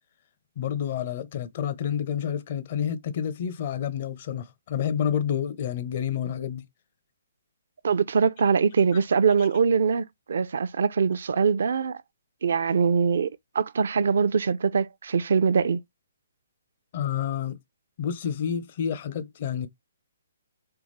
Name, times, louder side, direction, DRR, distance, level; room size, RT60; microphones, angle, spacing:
voice 1, 0.6-6.6 9.4-9.5 16.9-17.6 18.0-19.7, left 8 dB, 45° left, 0.6 m, -29 dB
voice 2, 7.8-12.0 12.4-13.3 13.5-15.8, right 6 dB, 65° right, 0.4 m, -23 dB
3.5 x 3.4 x 3.1 m
hypercardioid pair, 140°, 0 cm